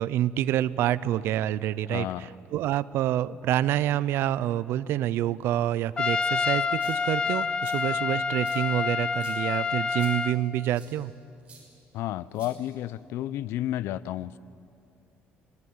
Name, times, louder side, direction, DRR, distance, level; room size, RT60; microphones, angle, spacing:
voice 1, 0.0-11.1, right 12 dB, 65° right, 0.6 m, -27 dB
voice 2, 1.9-2.3 11.9-14.4, left 13 dB, 75° left, 0.6 m, -32 dB
Trumpet, 6.0-10.4, left 5 dB, 20° left, 0.6 m, -27 dB
sound 1, 6.6-7.2 7.6-7.8 8.4-8.6 9.1-9.4 10.0-10.1 10.7-10.9 11.5-11.6 12.3-12.9, right 6 dB, 25° right, 6.2 m, -51 dB
25.5 x 19.5 x 9.6 m
cardioid pair, 170°, 4 cm